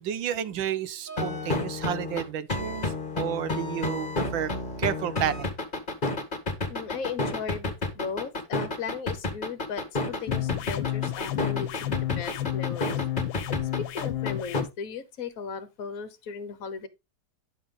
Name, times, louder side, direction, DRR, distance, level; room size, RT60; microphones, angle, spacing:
voice 1, 0.0-4.5 4.8-5.5, right 10 dB, 75° right, 1.5 m, -31 dB
sound 1, 1.1-14.6, left 2 dB, 25° left, 1.8 m, -30 dB
voice 2, 6.7-13.0 13.8-16.9, left 6 dB, 50° left, 1.5 m, -37 dB
sound 2, 10.3-14.7, left 13 dB, 80° left, 1.6 m, -31 dB
11.0 x 6.2 x 3.9 m
omnidirectional pair, 2.1 m